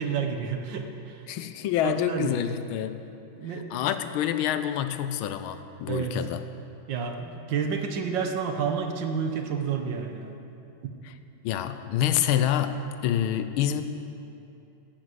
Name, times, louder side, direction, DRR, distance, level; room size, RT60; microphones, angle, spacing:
voice 1, 0.0-1.2 1.8-2.4 3.4-3.6 5.9-6.2 6.9-10.3 10.8-10.9, right 6 dB, 65° right, 5 dB, 1.5 m, -30 dB
voice 2, 1.3-3.0 3.5-6.4 11.0-11.1 11.4-13.8, left 10 dB, 85° left, 10 dB, 1.5 m, -27 dB
11.0 x 8.9 x 7.8 m, 2.7 s
omnidirectional pair, 2.3 m